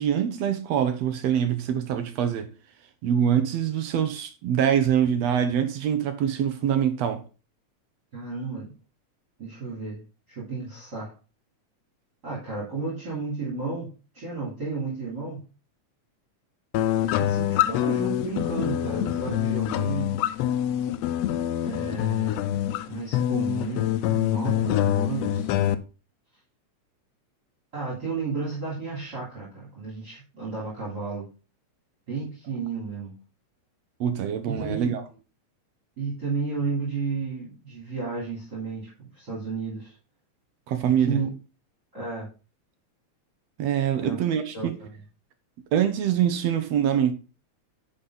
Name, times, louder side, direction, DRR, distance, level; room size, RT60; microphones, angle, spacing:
voice 1, 0.0-2.5 3.0-7.2 34.0-35.0 40.7-41.2 43.6-44.8 45.7-47.1, right 9 dB, 70° right, 1.9 m, -24 dB
voice 2, 8.1-8.7 9.4-10.0 10.3-11.1 12.2-13.9 14.1-15.4 17.0-20.1 21.6-22.6 22.9-25.5 27.7-31.3 32.1-33.1 34.4-34.9 36.0-39.9 40.8-41.3 41.9-42.3 44.0-44.2 44.5-44.9, right 4 dB, 35° right, 3.5 m, -32 dB
sound 1, 16.7-25.7, left 12 dB, 75° left, 1.6 m, -25 dB
10.0 x 5.5 x 3.9 m
omnidirectional pair, 3.3 m